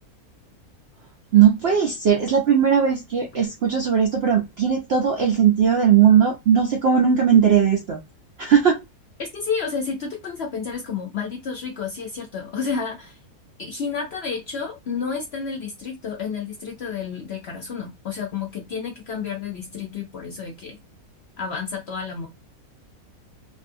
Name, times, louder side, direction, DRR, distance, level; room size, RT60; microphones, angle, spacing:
voice 1, 1.3-8.0 8.4-8.8, right 8 dB, 70° right, 0.6 m, -18 dB
voice 2, 9.2-13.2 13.6-20.8 21.4-22.3, left 5 dB, 60° left, 0.7 m, -30 dB
2.6 x 2.4 x 2.6 m
omnidirectional pair, 1.6 m